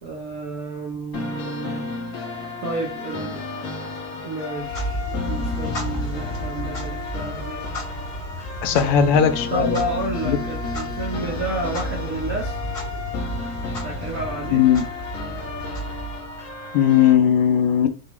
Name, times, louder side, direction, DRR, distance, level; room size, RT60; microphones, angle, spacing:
voice 1, 0.0-1.9 2.6-3.4 4.2-7.7 8.7-9.1 9.5-12.6 13.8-14.6, right 2 dB, 70° right, 0.8 m, -31 dB
sound 1, 1.1-17.1, left 4 dB, 55° left, 1.5 m, -33 dB
Clock, 4.6-16.5, equal, 35° left, 1.1 m, -32 dB
voice 2, 8.6-9.8 10.3-10.4 14.5-14.8 16.7-17.9, left 9 dB, 90° left, 1.5 m, -17 dB
5.2 x 2.3 x 3.0 m
omnidirectional pair, 2.4 m